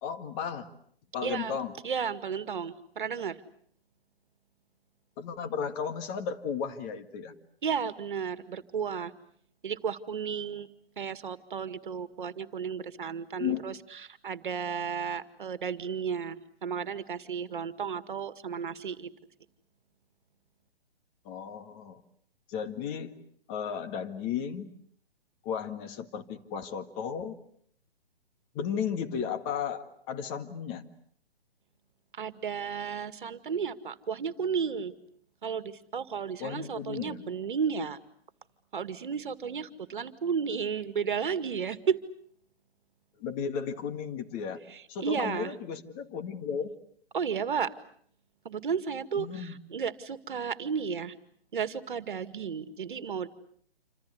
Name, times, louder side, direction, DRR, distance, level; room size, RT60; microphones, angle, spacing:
voice 1, 0.0-0.7 1.1-1.7 5.2-7.3 13.4-13.7 21.2-22.0 22.5-23.2 23.5-24.7 25.4-27.3 28.5-30.8 36.4-37.2 43.2-44.6 44.9-46.7 49.1-49.5, left 7 dB, 20° left, 8 dB, 1.9 m, -34 dB
voice 2, 1.2-1.6 1.8-3.4 7.6-9.1 9.6-10.7 11.0-13.7 14.1-19.1 32.1-34.9 35.4-38.0 38.7-42.0 45.0-45.6 47.1-47.7 48.4-51.1 51.5-53.3, right 6 dB, 55° right, 13 dB, 2.1 m, -33 dB
27.5 x 26.5 x 8.1 m, 0.65 s
figure-of-eight pair, 130°, 31 cm